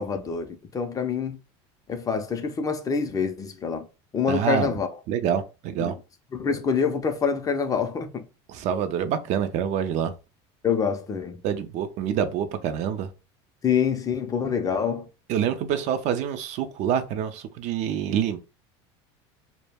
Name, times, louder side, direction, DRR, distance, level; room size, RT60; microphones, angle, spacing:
voice 1, 0.0-1.4 1.9-3.9 4.1-4.9 5.8-5.9 6.3-8.3 10.6-11.4 13.6-15.1, left 6 dB, 25° left, 0.4 m, -26 dB
voice 2, 4.3-4.7 5.1-5.9 8.5-10.1 11.4-13.1 15.3-18.4, right 8 dB, 55° right, 0.4 m, -26 dB
2.2 x 2.0 x 3.3 m
supercardioid pair, 110°, 14 cm